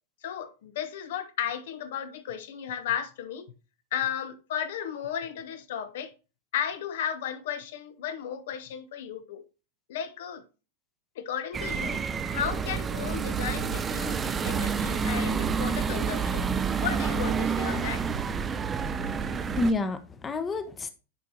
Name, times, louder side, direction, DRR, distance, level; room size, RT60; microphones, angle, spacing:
voice 1, 0.2-3.5 3.9-6.1 6.5-9.4 9.9-10.4 11.2-12.1 12.3-16.5 16.8-18.1, left 9 dB, 55° left, 0.7 m, -34 dB
sound 1, 11.5-19.7, right 6 dB, 20° right, 0.5 m, -29 dB
sound 2, 12.8-19.7, right 6 dB, 40° right, 0.9 m, -39 dB
voice 2, 15.2-15.7 19.0-20.9, left 2 dB, 20° left, 0.8 m, -31 dB
10.5 x 4.7 x 2.7 m
figure-of-eight pair, 90°, 0 cm